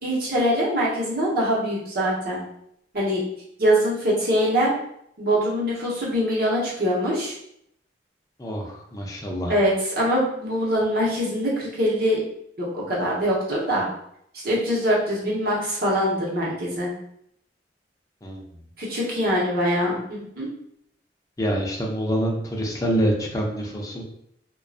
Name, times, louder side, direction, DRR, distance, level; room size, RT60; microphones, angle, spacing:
voice 1, 0.0-2.4 2.9-3.2 3.6-4.7 5.2-7.3 9.5-12.2 12.6-13.9 14.4-16.9 18.8-20.5, equal, 60° right, -5 dB, 0.9 m, -23 dB
voice 2, 8.4-9.6 18.2-18.4 21.4-24.0, equal, 20° left, -1 dB, 0.5 m, -26 dB
2.6 x 2.2 x 2.4 m, 0.72 s
head